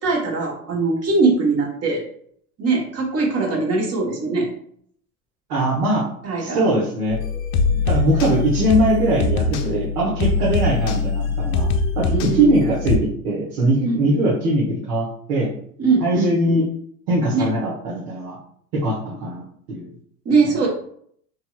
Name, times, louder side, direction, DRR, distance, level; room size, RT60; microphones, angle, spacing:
voice 1, 0.0-2.0 2.6-4.5 6.2-6.7 12.1-12.6 13.8-14.2 15.8-16.6 17.3-17.5 20.2-20.7, right 3 dB, 30° right, -1 dB, 1.2 m, -21 dB
voice 2, 5.5-6.1 6.4-7.2 7.7-11.7 12.0-15.5 16.0-16.7 17.1-18.4 18.7-19.4 19.7-19.9, right 1 dB, 70° right, -6 dB, 1.2 m, -21 dB
sound 1, 7.1-13.0, left 4 dB, 65° left, 0.6 m, -22 dB
3.1 x 2.7 x 2.4 m, 0.63 s
hypercardioid pair, 85°, 46 cm